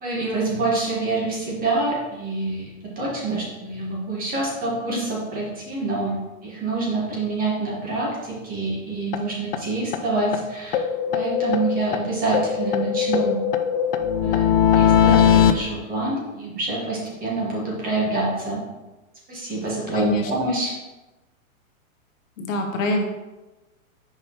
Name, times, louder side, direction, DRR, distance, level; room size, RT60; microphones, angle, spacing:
voice 1, 0.0-10.8 11.1-13.4 14.2-18.6 19.3-20.7, right 2 dB, 20° right, -4 dB, 1.7 m, -26 dB
sound 1, 9.1-9.2 9.5-9.6 9.9-10.0 10.3-10.4 10.7-12.0 12.3-15.5, left 9 dB, 45° left, 0.5 m, -19 dB
voice 2, 19.9-20.3 22.4-23.0, equal, 65° left, 3 dB, 1.2 m, -24 dB
6.1 x 4.9 x 3.1 m, 1.1 s
hypercardioid pair, 140°, 42 cm